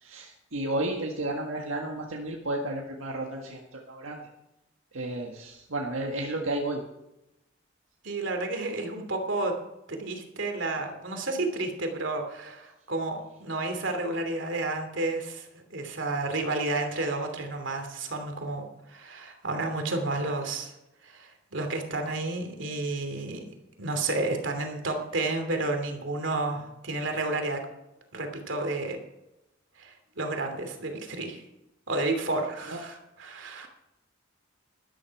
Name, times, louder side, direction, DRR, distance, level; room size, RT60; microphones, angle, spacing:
voice 1, 0.0-4.2 4.9-6.8 32.7-32.8, right 1 dB, 80° right, 0 dB, 1.7 m, -32 dB
voice 2, 8.0-9.5 9.9-20.7 21.0-23.5 23.8-27.6 28.1-29.0 29.8-31.4 31.9-33.7, right 2 dB, 65° right, 4 dB, 2.9 m, -31 dB
13.5 x 12.5 x 4.8 m, 0.89 s
head